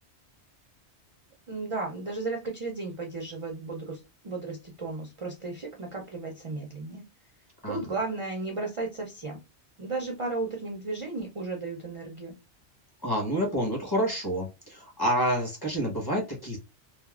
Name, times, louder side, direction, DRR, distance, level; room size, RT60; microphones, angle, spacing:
voice 1, 1.5-7.0 7.7-9.4 9.8-12.3, right 3 dB, 45° right, 1 dB, 0.4 m, -34 dB
voice 2, 13.0-16.6, equal, 20° left, -1 dB, 0.9 m, -28 dB
3.4 x 2.0 x 2.3 m, 0.25 s
omnidirectional pair, 1.2 m